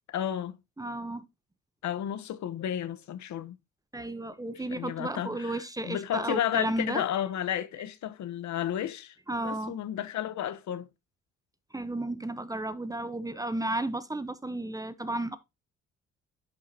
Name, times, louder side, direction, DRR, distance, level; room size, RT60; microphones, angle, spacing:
voice 1, 0.1-0.6 1.8-3.6 4.6-9.2 9.4-10.9, left 11 dB, 70° left, 1.0 m, -32 dB
voice 2, 0.8-1.3 3.9-7.0 9.3-9.8 11.7-15.4, right 1 dB, 10° right, 0.8 m, -33 dB
10.5 x 5.6 x 2.8 m
cardioid pair, 90°, 30 cm